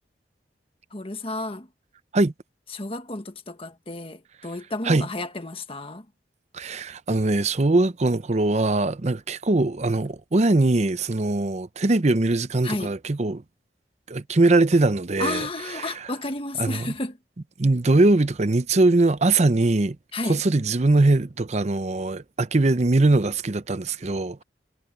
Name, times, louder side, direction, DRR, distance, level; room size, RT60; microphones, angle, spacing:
voice 1, 0.9-1.7 2.7-6.0 12.6-12.9 15.2-17.2 20.1-20.4, left 2 dB, 30° left, 1.5 m, -32 dB
voice 2, 6.5-13.4 14.1-15.5 15.8-15.9 16.6-16.9 17.6-20.0 20.2-24.4, right 2 dB, 40° right, 0.7 m, -21 dB
head